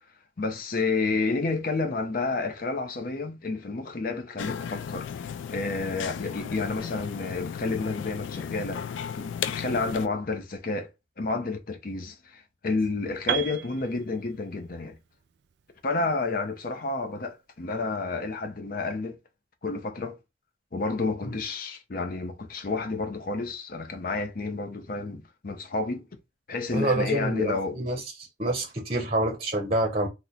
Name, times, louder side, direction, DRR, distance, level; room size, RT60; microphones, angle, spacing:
voice 1, 0.4-10.9 11.2-15.0 15.8-19.2 19.6-20.2 20.7-26.1 26.5-27.8, left 3 dB, 50° left, 0.6 m, -30 dB
sound 1, 4.4-10.1, left 7 dB, 85° left, 0.3 m, -35 dB
Piano, 13.3-17.2, right 9 dB, 60° right, 0.3 m, -35 dB
voice 2, 26.7-28.0 28.4-30.1, right 1 dB, 35° right, 0.7 m, -27 dB
2.9 x 2.2 x 3.7 m
head